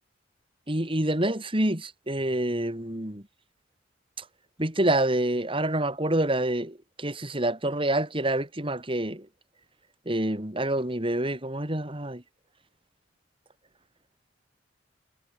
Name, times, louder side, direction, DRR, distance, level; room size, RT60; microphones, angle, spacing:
voice 1, 0.7-3.2 4.6-9.3 10.1-12.2, right 1 dB, 30° right, 3.0 m, -27 dB
head